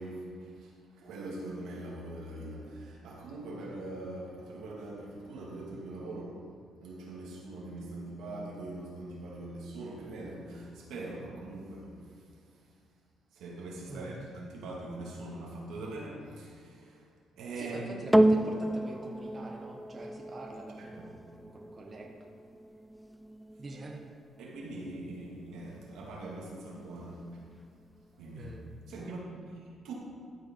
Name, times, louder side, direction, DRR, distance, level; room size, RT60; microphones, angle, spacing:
voice 1, 0.0-6.4 6.8-11.9 13.3-17.0 17.4-17.9 20.8-21.1 24.4-27.4 28.2-28.5 28.9-29.3 29.6-29.9, right 2 dB, 85° right, -3 dB, 2.1 m, -42 dB
voice 2, 13.9-14.2 17.5-22.2 23.6-24.0 28.4-28.6 29.0-29.1, right 2 dB, 35° right, 0 dB, 1.1 m, -45 dB
sound 1, 18.1-26.7 27.4-27.5, right 1 dB, 5° right, 0.3 m, -32 dB
13.5 x 5.4 x 4.6 m, 2.4 s
cardioid pair, 90°, 0 cm